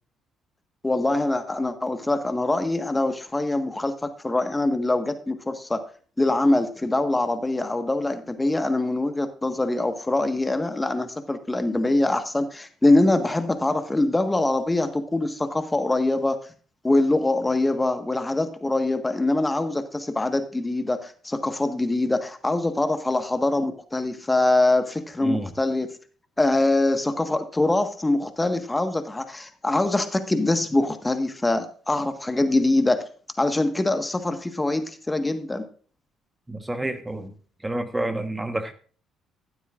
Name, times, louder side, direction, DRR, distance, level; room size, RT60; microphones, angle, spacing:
voice 1, 0.8-5.8 6.2-16.4 16.8-25.9 26.4-33.0 33.4-35.6, left 2 dB, 15° left, 9 dB, 1.5 m, -23 dB
voice 2, 25.2-25.5 36.5-37.3 37.6-38.7, right 1 dB, 15° right, 9 dB, 1.3 m, -29 dB
14.0 x 12.0 x 2.5 m, 0.42 s
figure-of-eight pair, 45°, 0 cm